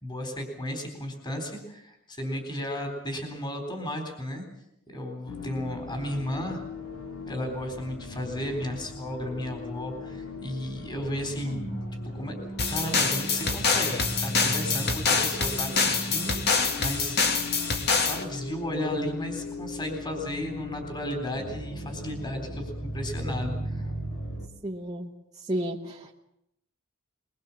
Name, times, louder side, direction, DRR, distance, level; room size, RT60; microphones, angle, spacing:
voice 1, 0.0-4.5 4.9-6.6 7.3-11.6 12.2-12.4 12.7-17.3 18.0-23.8, left 1 dB, 20° left, 4 dB, 3.8 m, -34 dB
sound 1, 5.3-24.5, left 1 dB, 70° left, 2.8 m, -37 dB
sound 2, 12.6-18.2, left 4 dB, 50° left, 2.3 m, -26 dB
voice 2, 24.6-25.1 25.5-26.2, equal, 20° right, -2 dB, 1.4 m, -32 dB
22.5 x 22.0 x 7.2 m, 0.81 s
head